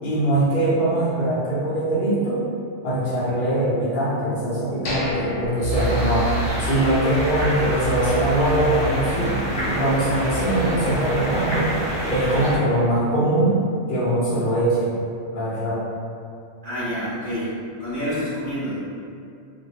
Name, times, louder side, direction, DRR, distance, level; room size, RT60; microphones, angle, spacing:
voice 1, 0.0-2.4 2.8-6.3 6.6-9.4 9.6-11.7 12.1-13.6 13.9-14.9 15.3-15.8, right 1 dB, 55° left, -8 dB, 0.7 m, -22 dB
sound 1, 4.9-6.8 7.1-7.2 7.7-7.9, left 2 dB, 85° left, 1.0 m, -31 dB
sound 2, 5.6-12.4, right 2 dB, 65° right, 0.8 m, -30 dB
sound 3, 5.7-12.6, equal, 10° left, 0.3 m, -28 dB
voice 2, 5.7-6.0 16.6-17.5 17.8-18.8, equal, 25° right, -15 dB, 0.7 m, -29 dB
2.2 x 2.1 x 2.8 m, 2.4 s
omnidirectional pair, 1.2 m